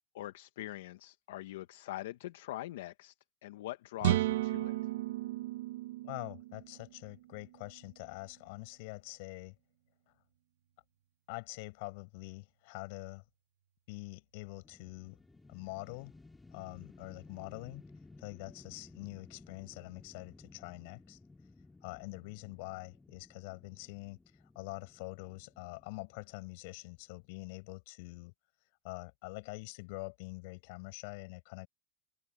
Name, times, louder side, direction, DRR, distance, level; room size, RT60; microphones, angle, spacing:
voice 1, 0.1-3.1 3.4-4.7, left 15 dB, 80° left, 1.0 m, -43 dB
sound 1, 4.0-7.8, right 14 dB, 85° right, 1.0 m, -34 dB
voice 2, 6.0-9.5 11.3-13.2 13.9-15.2 15.5-16.1 16.5-17.8 18.2-21.2 21.8-24.2 24.6-28.3 28.8-31.7, left 28 dB, 65° left, 7.3 m, -45 dB
sound 2, 14.6-26.9, left 3 dB, 10° left, 3.5 m, -57 dB
open air
supercardioid pair, 125°, 0 cm